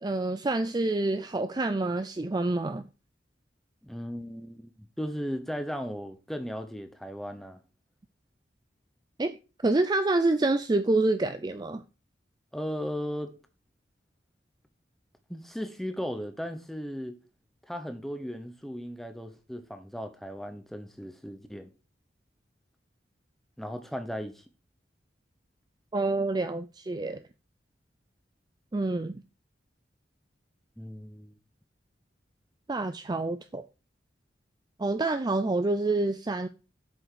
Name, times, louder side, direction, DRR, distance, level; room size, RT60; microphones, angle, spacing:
voice 1, 0.0-2.8 9.2-9.4 9.6-11.8 25.9-27.2 28.7-29.2 32.7-33.6 34.8-36.5, right 2 dB, 20° right, 0.4 m, -27 dB
voice 2, 3.8-7.6 12.5-13.3 15.3-17.2 17.7-21.7 23.6-24.4 30.8-31.3, equal, ahead, 0.9 m, -36 dB
8.0 x 6.3 x 4.7 m
head